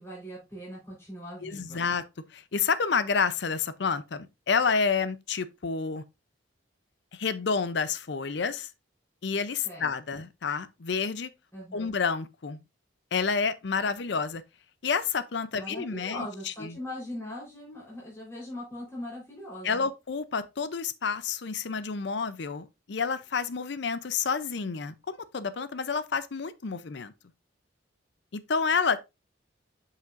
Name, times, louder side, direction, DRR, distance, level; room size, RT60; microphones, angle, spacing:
voice 1, 0.0-1.9 9.6-9.9 11.5-11.9 15.5-19.9, left 1 dB, 15° left, 3.9 m, -40 dB
voice 2, 1.4-2.0 2.3-6.0 7.1-8.7 9.2-11.3 11.7-12.6 13.1-14.4 14.8-16.3 16.6-16.8 19.6-27.1 28.3-29.0, left 5 dB, 60° left, 0.5 m, -29 dB
7.5 x 5.8 x 2.5 m
head